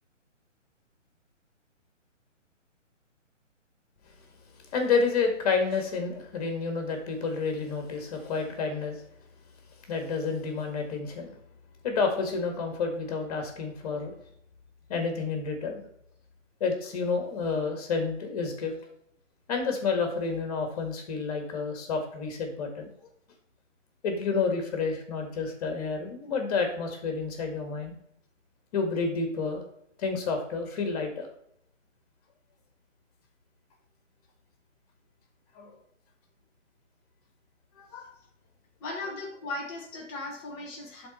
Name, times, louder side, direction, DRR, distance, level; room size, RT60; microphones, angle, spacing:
voice 1, 4.7-9.0 9.9-11.3 11.8-14.1 14.9-15.8 16.6-18.7 19.5-22.9 24.0-27.9 28.7-29.6 30.0-31.3 35.6-35.7 37.8-38.0, left 4 dB, 30° left, 4 dB, 1.9 m, -29 dB
voice 2, 38.8-41.1, left 2 dB, 5° left, -2 dB, 0.6 m, -37 dB
11.5 x 4.2 x 4.2 m, 0.72 s
figure-of-eight pair, 135°, 38 cm